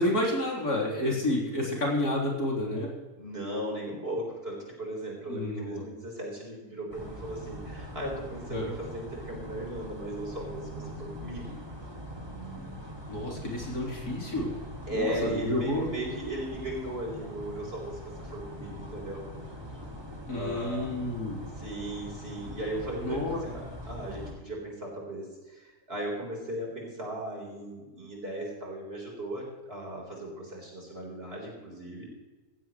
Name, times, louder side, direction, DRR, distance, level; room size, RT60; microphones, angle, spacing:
voice 1, 0.0-2.9 5.3-5.8 8.5-8.7 12.5-12.7 13.1-14.5 14.9-15.9 20.3-21.5 23.0-23.4, left 1 dB, 75° left, -3 dB, 4.2 m, -30 dB
voice 2, 3.2-11.6 14.9-19.2 20.3-20.9 21.6-32.1, right 1 dB, 40° right, -2 dB, 4.4 m, -37 dB
sound 1, 6.9-24.3, equal, 15° right, 1.7 m, -42 dB
16.5 x 15.0 x 3.1 m, 1.2 s
omnidirectional pair, 1.6 m